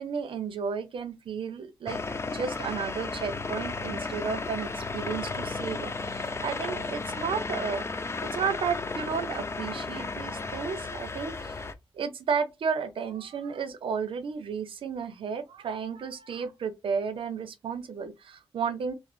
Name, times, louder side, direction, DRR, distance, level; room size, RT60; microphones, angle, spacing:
voice 1, 0.0-2.0 2.3-7.8 8.2-11.6 11.9-18.9, right 6 dB, 75° right, 0.6 m, -33 dB
sound 1, 1.9-11.7, left 3 dB, 30° left, 0.4 m, -34 dB
2.9 x 2.0 x 3.1 m
cardioid pair, 55°, 9 cm